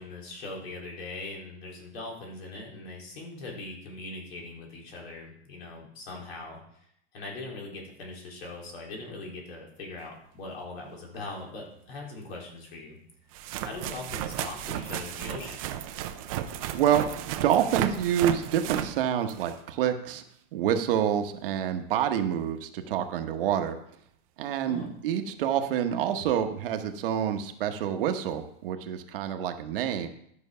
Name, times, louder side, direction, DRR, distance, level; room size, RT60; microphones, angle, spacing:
voice 1, 0.0-13.0 13.6-15.7 24.6-24.9, left 2 dB, 60° left, -1 dB, 4.0 m, -41 dB
sound 1, 11.1-11.2 12.5-12.6 13.3-19.7 24.8-24.9 25.9-26.0 26.2-26.4 28.2-28.3, right 11 dB, 30° right, 0.6 m, -34 dB
voice 2, 16.7-20.2 20.5-23.8 24.4-30.1, right 9 dB, 50° right, 7 dB, 1.1 m, -27 dB
11.5 x 6.1 x 5.6 m, 0.71 s
supercardioid pair, 170°, 35 cm